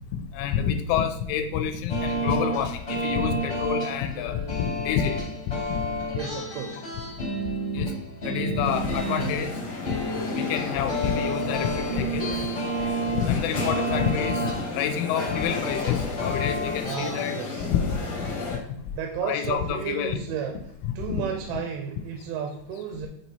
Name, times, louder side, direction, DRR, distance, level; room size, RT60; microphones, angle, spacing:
voice 1, 0.1-5.2 5.5-5.9 7.7-7.9 8.2-9.5 9.9-10.0 10.4-12.5 13.1-17.4 17.7-18.0 19.2-20.2 20.8-21.2, left 8 dB, 85° left, 7 dB, 3.0 m, -28 dB
sound 1, 1.9-17.4, right 1 dB, 45° left, 0.7 m, -31 dB
voice 2, 6.2-6.8 16.8-17.7 18.9-20.6 21.0-23.1, right 7 dB, 85° right, 4 dB, 2.9 m, -33 dB
sound 2, 8.6-18.6, left 3 dB, 65° left, 2.0 m, -34 dB
7.8 x 3.0 x 4.1 m, 0.72 s
omnidirectional pair, 5.4 m